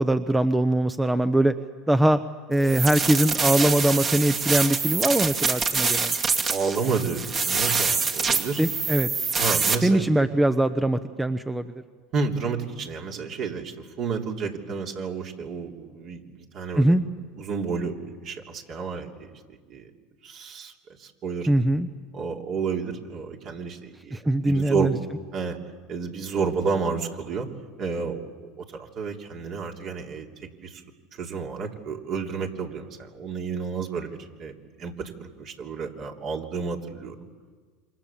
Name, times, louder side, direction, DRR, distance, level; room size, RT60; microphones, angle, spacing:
voice 1, 0.0-1.5 1.9-2.2 2.5-6.1 8.6-9.1 9.8-11.7 16.7-17.0 21.5-21.9 24.1-25.0, right 1 dB, 10° right, 10 dB, 0.9 m, -22 dB
sound 1, 2.6-9.7, right 5 dB, 35° right, 2.4 m, -25 dB
voice 2, 6.5-8.6 9.4-10.3 12.1-16.9 17.4-19.4 19.7-19.9 20.2-20.7 21.0-21.5 22.1-24.9 25.3-25.6 25.9-27.5 27.8-30.8 31.1-37.1, right 5 dB, 50° right, 1 dB, 3.4 m, -31 dB
27.5 x 25.5 x 7.3 m, 1.5 s
hypercardioid pair, 90°, 0 cm